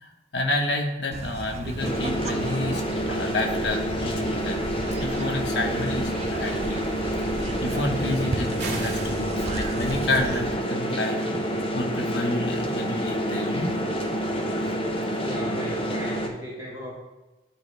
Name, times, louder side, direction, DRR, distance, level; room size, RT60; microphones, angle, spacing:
voice 1, 0.0-2.8 3.1-6.9 7.6-11.2 11.7-13.8, left 2 dB, 80° left, 3 dB, 1.1 m, -29 dB
sound 1, 1.1-10.5, right 2 dB, 35° right, 0.4 m, -35 dB
sound 2, 1.8-16.3, equal, 30° left, 0.8 m, -28 dB
sound 3, 8.6-9.2, right 3 dB, 75° right, 1.9 m, -34 dB
voice 2, 15.2-16.9, equal, 15° right, -12 dB, 2.3 m, -36 dB
12.0 x 4.4 x 3.3 m, 1.1 s
head